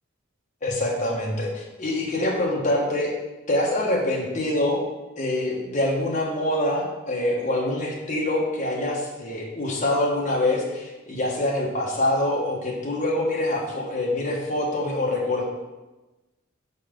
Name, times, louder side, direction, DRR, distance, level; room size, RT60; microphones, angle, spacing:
voice 1, 0.6-3.1 3.5-4.8 5.2-15.4, left 1 dB, 35° left, -2 dB, 1.2 m, -25 dB
4.9 x 4.1 x 5.2 m, 1.1 s
head